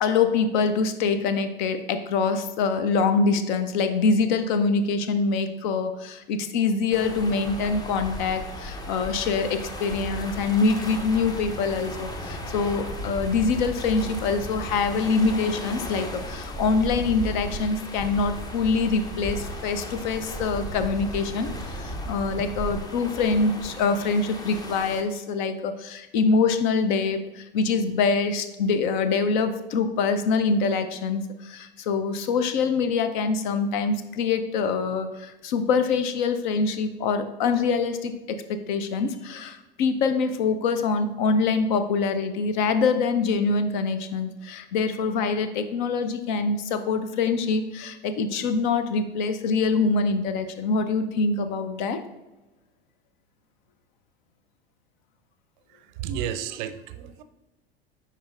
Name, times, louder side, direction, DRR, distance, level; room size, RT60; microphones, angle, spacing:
voice 1, 0.0-52.0, left 4 dB, 50° left, 10 dB, 0.7 m, -25 dB
sound 1, 6.9-25.0, equal, 10° left, 0.6 m, -35 dB
voice 2, 56.0-57.2, right 9 dB, 50° right, 11 dB, 0.5 m, -32 dB
10.0 x 4.3 x 2.5 m, 1.1 s
figure-of-eight pair, 80°, 31 cm